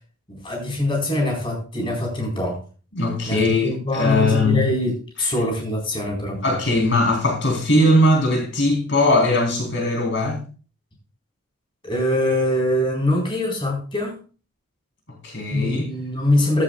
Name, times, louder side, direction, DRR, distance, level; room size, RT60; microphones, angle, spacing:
voice 1, 0.3-2.6 3.3-6.4 11.8-14.2 15.5-16.6, left 1 dB, 25° left, 0 dB, 4.1 m, -23 dB
voice 2, 2.9-4.7 6.4-10.4 15.1-15.9, left 1 dB, 55° left, 0 dB, 3.7 m, -20 dB
14.0 x 11.0 x 2.3 m, 0.36 s
head